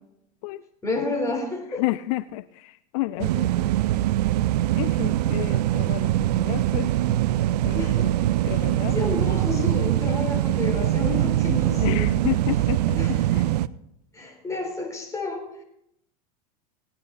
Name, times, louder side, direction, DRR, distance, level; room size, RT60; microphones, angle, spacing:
voice 1, 0.8-1.9 7.8-8.1 8.5-8.6 8.9-12.2 12.5-13.3 14.1-15.6, left 3 dB, 15° left, 2 dB, 3.7 m, -30 dB
voice 2, 1.8-2.4 2.9-3.4 4.8-6.9 7.6-7.8 8.5-8.9 11.8-12.8 13.3-13.4, left 19 dB, 60° left, 14 dB, 0.5 m, -30 dB
sound 1, 3.2-13.7, right 14 dB, 80° right, 0.5 m, -23 dB
18.0 x 10.0 x 4.0 m, 0.79 s
hypercardioid pair, 100°, 20 cm